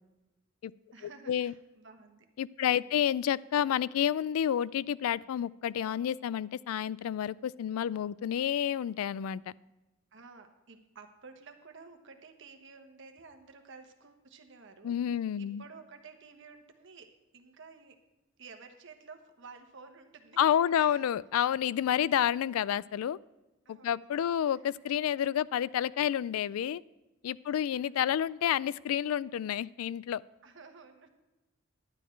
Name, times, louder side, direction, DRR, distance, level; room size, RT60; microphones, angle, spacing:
voice 1, 0.9-2.3 2.7-3.0 10.1-18.0 18.4-21.1 23.6-24.6 27.7-28.1 30.4-31.1, right 4 dB, 60° right, 6 dB, 1.2 m, -53 dB
voice 2, 2.4-9.4 14.8-15.6 20.4-23.2 23.7-26.8 27.2-30.2, left 9 dB, 90° left, 20 dB, 0.3 m, -29 dB
11.5 x 9.1 x 4.5 m, 1.1 s
head